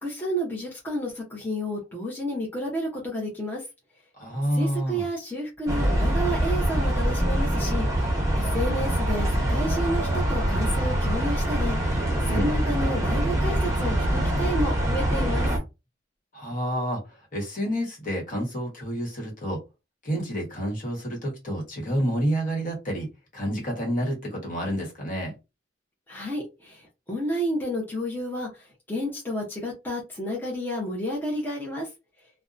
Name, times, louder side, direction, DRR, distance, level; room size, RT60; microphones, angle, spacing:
voice 1, 0.0-3.6 4.5-8.1 8.3-12.0 12.3-15.5 26.1-28.5 28.9-31.9, equal, 10° left, 0.7 m, -31 dB
voice 2, 4.2-5.1 12.2-12.5 16.3-17.0 17.3-19.6 20.0-23.1 23.3-25.3, equal, 45° left, 1.2 m, -29 dB
sound 1, 5.7-15.6, right 1 dB, 20° right, 0.8 m, -24 dB
2.6 x 2.1 x 2.4 m
head